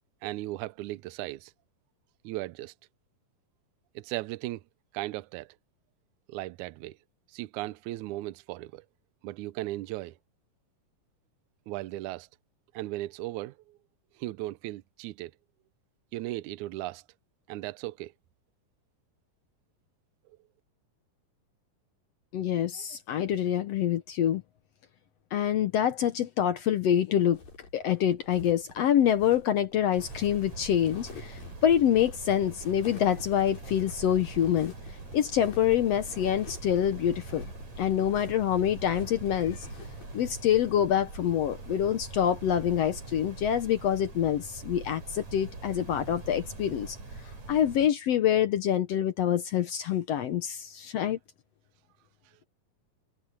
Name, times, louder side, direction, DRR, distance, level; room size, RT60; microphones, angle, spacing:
voice 1, 0.2-1.5 2.2-2.7 4.0-4.6 4.9-5.5 6.3-7.0 7.3-8.9 9.2-10.2 11.7-12.3 12.7-13.8 14.2-15.3 16.1-17.0 17.5-18.1, right 17 dB, 75° right, 1.9 m, -36 dB
voice 2, 22.3-24.4 25.3-27.4 27.7-34.7 35.1-37.5 37.8-39.7 40.1-47.0 47.5-51.2, left 10 dB, 70° left, 1.5 m, -26 dB
sound 1, 27.2-40.4, left 4 dB, 85° left, 9.1 m, -49 dB
sound 2, 30.0-47.9, right 3 dB, 55° right, 7.5 m, -43 dB
omnidirectional pair, 3.9 m